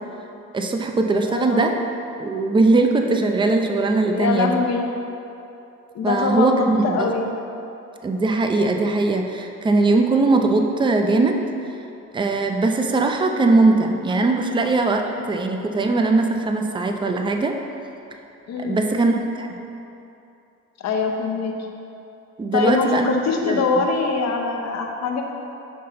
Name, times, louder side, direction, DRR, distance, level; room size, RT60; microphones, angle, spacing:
voice 1, 0.5-1.7 2.2-4.6 6.0-7.1 8.0-11.4 12.1-17.6 18.6-19.6 22.4-23.1 23.4-23.6, right 3 dB, 15° right, 4 dB, 0.5 m, -20 dB
voice 2, 1.3-1.9 4.1-4.9 5.9-7.3 15.1-15.3 18.5-18.8 20.8-21.7 22.5-25.2, left 4 dB, 60° left, 3 dB, 0.8 m, -23 dB
5.8 x 5.5 x 3.8 m, 2.8 s
cardioid pair, 90°, 30 cm